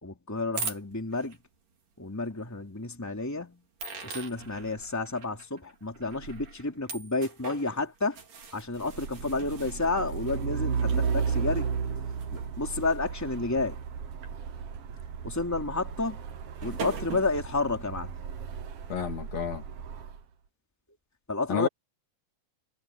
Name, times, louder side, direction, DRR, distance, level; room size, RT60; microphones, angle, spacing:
voice 1, 0.0-1.4 2.0-3.6 4.0-8.2 8.5-11.7 12.3-13.8 15.2-16.2 16.6-18.2 21.3-21.7, left 3 dB, 5° left, 3.0 m, -31 dB
sound 1, 0.5-1.4 2.3-2.4 3.8-14.3 14.8-14.9 16.2-16.3 16.6-17.5, right 5 dB, 90° right, 5.6 m, -42 dB
Truck, 8.9-20.2, right 6 dB, 55° right, 2.2 m, -34 dB
voice 2, 18.9-19.6 21.5-21.7, left 7 dB, 60° left, 3.8 m, -30 dB
omnidirectional pair, 3.6 m